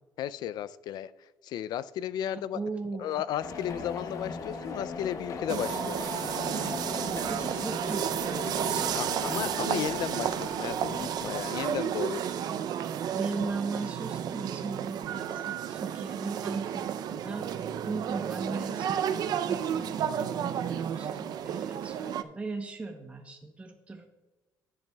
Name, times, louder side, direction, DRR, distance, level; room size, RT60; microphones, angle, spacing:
voice 1, 0.2-1.1 1.4-2.6 3.0-6.0 8.9-12.4, left 11 dB, 70° left, 16 dB, 0.3 m, -34 dB
voice 2, 2.2-3.2 6.9-9.4 13.1-17.5 17.9-24.1, right 3 dB, 15° right, 4 dB, 0.8 m, -38 dB
sound 1, 3.4-12.0, left 4 dB, 50° left, 1.0 m, -39 dB
sound 2, 5.5-22.2, right 9 dB, 65° right, 0.5 m, -32 dB
12.0 x 10.0 x 2.3 m, 1.2 s
cardioid pair, 120°, 7 cm